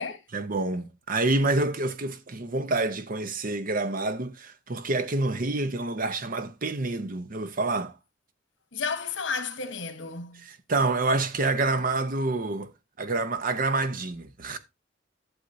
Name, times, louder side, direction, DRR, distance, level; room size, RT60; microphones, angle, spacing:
voice 1, 0.3-8.0 10.3-12.7 13.0-14.6, right 2 dB, 50° right, 0.8 m, -27 dB
voice 2, 8.7-10.4, left 5 dB, 90° left, 1.2 m, -32 dB
11.5 x 7.2 x 2.7 m
head